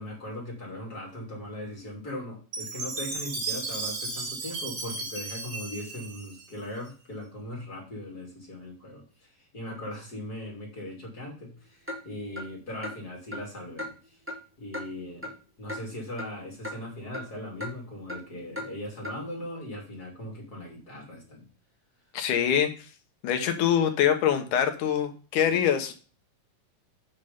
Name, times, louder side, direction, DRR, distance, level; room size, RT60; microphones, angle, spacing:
voice 1, 0.0-14.2 14.6-21.5, left 1 dB, 30° left, -2 dB, 3.2 m, -39 dB
Chime, 2.5-6.9, right 3 dB, 45° right, 2.6 m, -35 dB
Clock, 11.9-12.0 12.3-12.5 12.8-13.0 13.3-13.4 13.8-13.9 14.3-14.4 14.7-14.9 15.2-15.3 15.7-15.8 16.2-16.3 16.6-16.7 17.1-17.3 17.6-17.7 18.1-18.2 18.5-18.7 19.0-19.2, left 1 dB, 15° right, 0.4 m, -35 dB
voice 2, 22.1-22.9 23.2-25.9, left 9 dB, 75° left, 6 dB, 2.6 m, -24 dB
8.2 x 5.6 x 5.3 m, 0.36 s
omnidirectional pair, 3.8 m